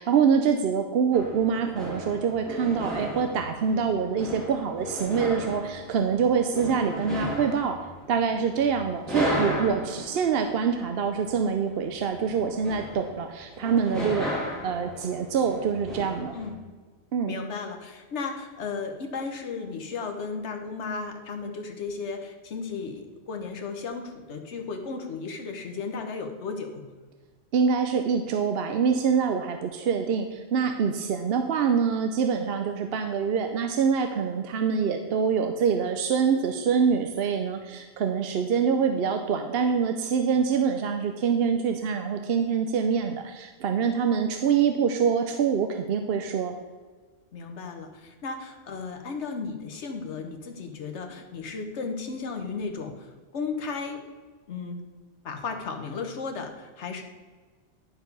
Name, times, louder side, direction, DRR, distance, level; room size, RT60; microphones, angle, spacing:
voice 1, 0.0-7.8 8.1-14.3 14.6-16.4 17.1-17.3 27.5-46.5, right 6 dB, 65° right, 6 dB, 0.8 m, -25 dB
sound 1, 1.1-16.5, left 1 dB, ahead, 2.0 m, -35 dB
voice 2, 17.3-26.9 47.3-54.1 54.5-54.8 55.2-57.0, left 4 dB, 75° left, 4 dB, 1.3 m, -35 dB
11.0 x 4.7 x 5.3 m, 1.4 s
omnidirectional pair, 1.2 m